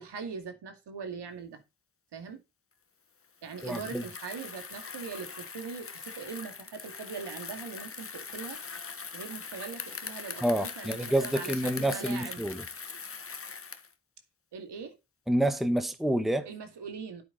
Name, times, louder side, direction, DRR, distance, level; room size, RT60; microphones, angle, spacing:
voice 1, 0.0-1.6 2.1-2.4 3.4-8.6 9.1-12.4 14.5-15.0 16.5-17.2, right 5 dB, 65° right, 2.4 m, -41 dB
Bicycle, 3.4-13.9, left 5 dB, 30° left, 1.3 m, -41 dB
voice 2, 3.6-4.0 10.4-12.6 15.3-16.5, right 1 dB, ahead, 1.3 m, -28 dB
9.5 x 8.1 x 4.0 m
supercardioid pair, 60°, 44 cm